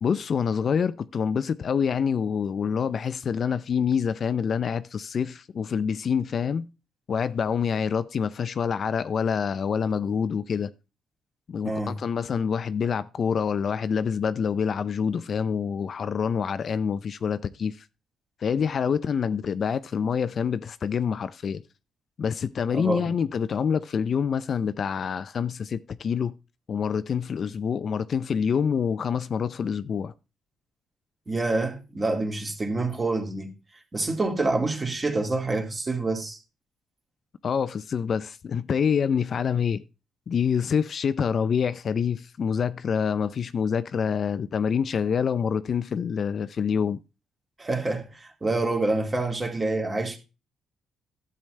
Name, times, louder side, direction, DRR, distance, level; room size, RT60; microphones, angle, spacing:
voice 1, 0.0-6.7 7.1-10.7 11.5-17.8 18.4-21.6 22.2-26.3 26.7-30.1 37.4-39.8 40.3-47.0, left 7 dB, 50° left, 0.5 m, -26 dB
voice 2, 11.6-12.0 22.7-23.1 31.3-33.5 33.9-36.4 47.6-50.2, right 2 dB, 25° right, 2.2 m, -27 dB
12.0 x 7.7 x 3.2 m
cardioid pair, 90°, 0 cm